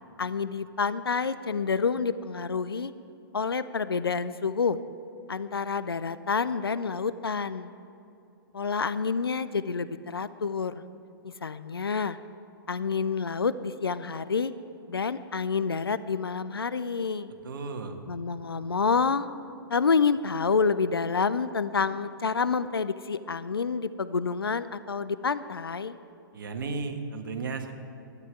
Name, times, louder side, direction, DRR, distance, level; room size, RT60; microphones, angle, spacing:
voice 1, 0.2-2.9 3.3-4.8 5.3-7.7 8.5-10.8 11.2-12.2 12.7-14.5 14.9-17.3 18.1-19.3 19.7-26.0, left 5 dB, 75° left, 14 dB, 0.5 m, -28 dB
voice 2, 17.4-18.0 26.3-27.7, right 4 dB, 60° right, 5 dB, 1.6 m, -34 dB
13.0 x 10.0 x 9.1 m, 2.7 s
figure-of-eight pair, 115°, 12 cm